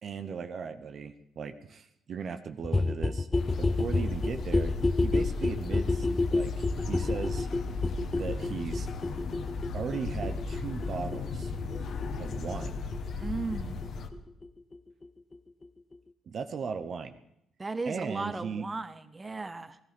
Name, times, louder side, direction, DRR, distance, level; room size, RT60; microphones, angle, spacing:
voice 1, 0.0-3.3 3.6-7.5 8.2-8.9 9.7-11.5 12.2-12.8 16.3-17.1 17.9-18.7, right 6 dB, 55° right, 9 dB, 0.8 m, -37 dB
sound 1, 2.6-14.2 14.4-14.5 14.7-14.8 15.0-15.1 15.3-15.4 15.6-15.7 15.9-16.0, left 3 dB, 20° left, 0.5 m, -30 dB
sound 2, 3.3-14.1, left 4 dB, 65° left, 1.3 m, -35 dB
voice 2, 13.2-13.8 17.6-19.8, right 3 dB, 25° right, 11 dB, 1.0 m, -36 dB
17.0 x 14.0 x 5.2 m, 0.76 s
cardioid pair, 90°, 0 cm